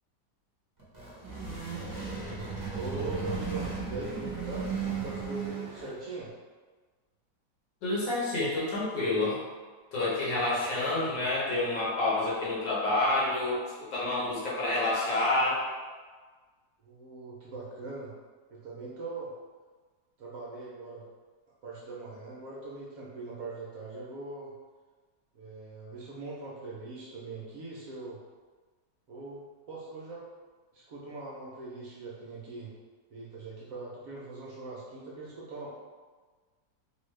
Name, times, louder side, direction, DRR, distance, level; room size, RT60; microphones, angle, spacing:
sound 1, 0.8-6.1, right 5 dB, 15° right, 0.7 m, -35 dB
voice 1, 2.7-6.3 10.6-10.8 16.8-18.1 18.5-19.3 20.2-21.0 21.6-24.5 25.3-28.2 29.1-30.2 30.7-32.7 33.1-35.7, right 3 dB, 70° right, -6 dB, 0.9 m, -41 dB
voice 2, 7.8-9.4 9.9-13.6 13.9-15.6, left 2 dB, 80° left, -6 dB, 1.6 m, -28 dB
3.4 x 2.3 x 3.1 m, 1.4 s
omnidirectional pair, 1.9 m